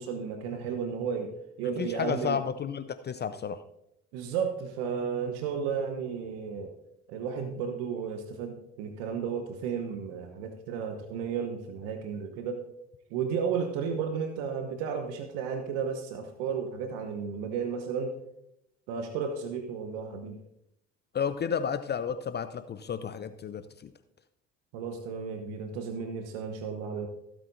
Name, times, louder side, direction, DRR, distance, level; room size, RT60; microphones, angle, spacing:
voice 1, 0.0-1.3 1.6-2.4 4.1-6.7 7.1-12.6 13.1-18.1 18.9-20.4 24.7-27.1, right 6 dB, 70° right, 6 dB, 1.1 m, -33 dB
voice 2, 1.8-3.6 21.1-23.6, left 7 dB, 30° left, 12 dB, 0.6 m, -32 dB
15.5 x 8.4 x 2.6 m, 0.81 s
hypercardioid pair, 55°, 32 cm